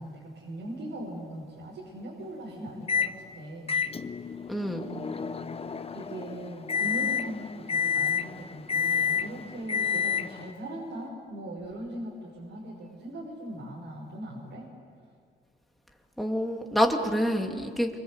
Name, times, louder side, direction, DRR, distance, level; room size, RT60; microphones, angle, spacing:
voice 1, 0.0-3.9 4.7-5.4 5.9-14.7, right 1 dB, 75° right, -3 dB, 6.2 m, -40 dB
Microwave oven, 2.9-3.2 3.7-10.5, left 7 dB, 30° left, 1.0 m, -30 dB
voice 2, 4.5-4.9 16.2-17.9, equal, ahead, 2 dB, 2.6 m, -27 dB
29.0 x 25.0 x 8.1 m, 2.1 s
cardioid pair, 120°, 21 cm